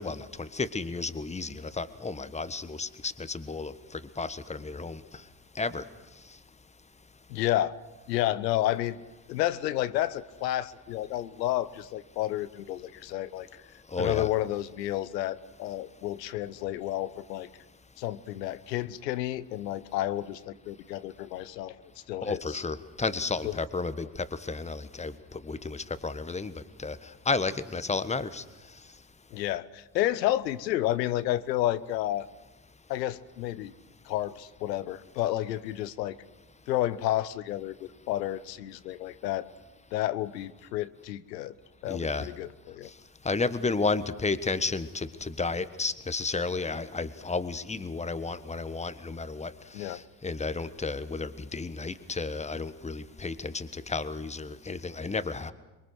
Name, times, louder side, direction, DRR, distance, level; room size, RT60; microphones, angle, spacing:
voice 1, 0.0-5.2 5.5-5.8 13.9-14.3 22.2-28.4 41.9-42.3 42.8-42.9 43.2-55.5, left 3 dB, 15° left, 13 dB, 1.3 m, -32 dB
voice 2, 7.3-7.7 8.1-9.0 9.3-13.6 14.0-17.5 18.0-21.7 22.1-22.6 23.4-23.5 29.3-32.3 32.9-33.7 34.1-36.2 36.7-39.5 39.9-41.5 41.8-42.9 49.7-50.0, left 14 dB, 75° left, 16 dB, 1.0 m, -31 dB
26.5 x 22.5 x 6.4 m, 1.1 s
figure-of-eight pair, 60°, 50 cm